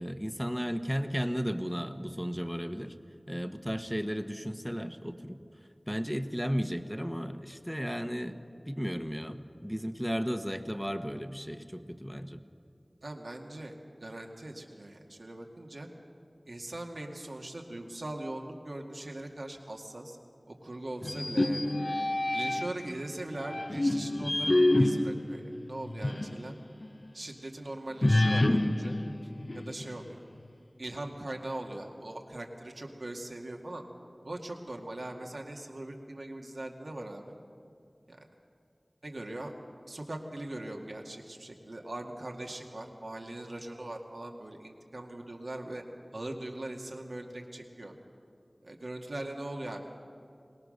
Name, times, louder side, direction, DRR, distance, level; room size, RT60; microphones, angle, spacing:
voice 1, 0.0-2.9 3.3-5.4 5.9-8.4 8.7-12.4, equal, ahead, 8 dB, 1.2 m, -34 dB
voice 2, 13.0-15.9 16.5-20.2 20.5-21.8 22.3-26.5 27.1-29.0 29.5-30.2 30.8-33.8 34.2-37.3 38.1-38.3 39.0-39.5 39.8-45.8 46.1-47.9 48.6-49.8, right 1 dB, 90° right, 1 dB, 2.1 m, -40 dB
sound 1, 21.0-22.9 23.4-26.4 26.8-26.9 28.0-30.1, left 1 dB, 55° left, 0.9 m, -27 dB
23.0 x 20.0 x 6.6 m, 2.4 s
wide cardioid pair, 45°, 0 cm